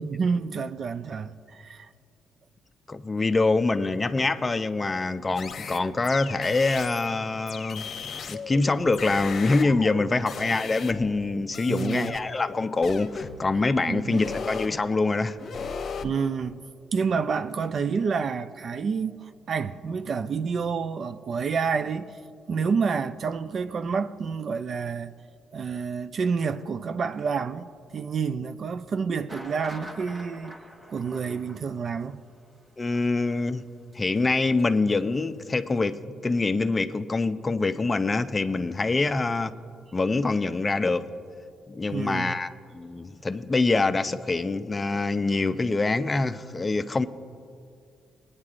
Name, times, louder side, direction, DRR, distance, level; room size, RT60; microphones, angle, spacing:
voice 1, 0.0-1.9 11.6-12.1 13.9-14.2 16.0-16.7 16.9-22.2 22.5-25.1 25.5-30.6 30.9-32.2 41.9-42.4, right 5 dB, 50° right, 0.4 m, -29 dB
voice 2, 2.9-7.9 8.3-15.4 32.8-33.6 33.9-39.5 39.9-41.1 41.7-47.0, left 3 dB, 25° left, 0.5 m, -25 dB
sound 1, 5.3-7.1 7.5-11.2 11.5-13.5 14.1-14.8 15.4-16.1, left 5 dB, 60° left, 0.8 m, -37 dB
sound 2, 29.3-34.9 35.2-35.3 35.7-35.8, equal, 35° right, 1.1 m, -46 dB
19.5 x 9.6 x 2.5 m
cardioid pair, 90°, 0 cm